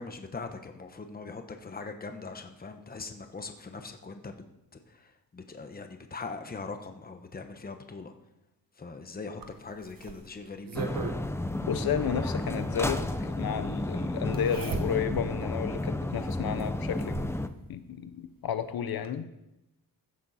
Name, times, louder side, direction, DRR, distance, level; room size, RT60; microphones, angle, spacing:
voice 1, 0.0-4.4 4.7-8.1 8.8-10.9, left 4 dB, 25° left, 6 dB, 1.1 m, -41 dB
Zipper (clothing), 9.4-11.2 12.6-12.7 14.3-15.3 15.8-15.9 16.6-17.4 18.6-18.7 19.0-19.1, right 5 dB, 65° right, 1.6 m, -38 dB
sound 1, 10.7-17.5, left 1 dB, 5° left, 0.6 m, -32 dB
voice 2, 11.6-17.2 17.7-19.3, left 8 dB, 70° left, 10 dB, 0.9 m, -32 dB
15.5 x 11.5 x 4.3 m, 0.91 s
wide cardioid pair, 145°, 37 cm